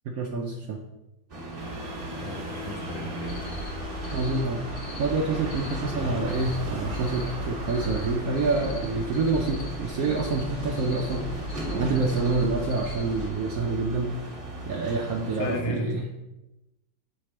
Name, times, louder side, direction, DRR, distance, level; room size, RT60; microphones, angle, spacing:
voice 1, 0.1-0.8 4.1-11.4 11.7-14.2 14.7-16.0, right 3 dB, 70° right, 1 dB, 0.8 m, -27 dB
sound 1, 1.3-15.6, right 1 dB, 35° right, 1.1 m, -37 dB
sound 2, 1.6-12.0, right 2 dB, 55° right, 1.4 m, -41 dB
voice 2, 2.2-3.3 15.4-15.9, left 2 dB, 80° left, 2 dB, 1.6 m, -34 dB
sound 3, 3.2-13.3, left 1 dB, 55° left, 1.5 m, -37 dB
6.0 x 5.0 x 3.2 m, 0.97 s
omnidirectional pair, 2.1 m